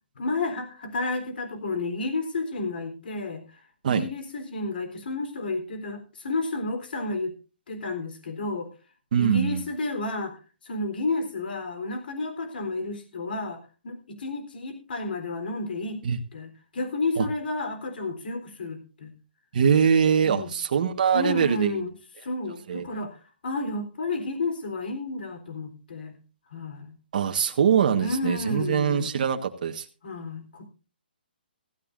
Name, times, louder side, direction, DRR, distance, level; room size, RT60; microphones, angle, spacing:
voice 1, 0.2-3.4 3.9-7.3 7.7-8.7 9.2-10.3 10.6-16.0 16.3-19.1 20.2-20.5 21.1-21.9 22.2-26.2 26.5-26.9 28.0-29.1 30.0-30.7, left 2 dB, 60° left, 7 dB, 3.9 m, -31 dB
voice 2, 9.1-9.6 16.0-16.2 17.2-17.3 19.5-21.8 22.7-22.9 27.1-29.8, right 7 dB, 50° right, 5 dB, 1.5 m, -23 dB
16.5 x 15.0 x 2.6 m, 0.34 s
hypercardioid pair, 155°, 6 cm